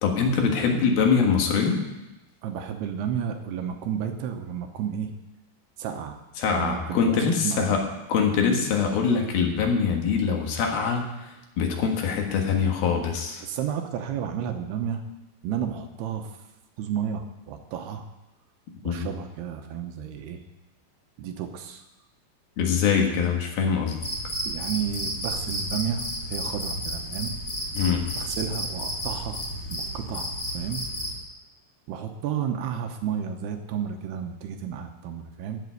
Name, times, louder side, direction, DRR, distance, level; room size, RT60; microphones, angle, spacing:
voice 1, 0.0-1.8 6.4-7.8 8.1-13.4 18.8-19.1 22.6-24.0 27.8-28.1, left 6 dB, 65° left, 2 dB, 3.1 m, -23 dB
voice 2, 2.4-5.1 5.8-6.2 6.5-7.8 13.4-15.0 15.4-16.4 16.8-18.0 18.8-20.4 21.2-21.8 24.4-27.3 28.2-29.4 29.7-30.8 31.9-35.6, right 8 dB, 75° right, 5 dB, 2.7 m, -32 dB
Cricket, 24.0-31.2, equal, 25° left, 2.4 m, -32 dB
13.5 x 6.8 x 9.4 m, 1.0 s
omnidirectional pair, 5.2 m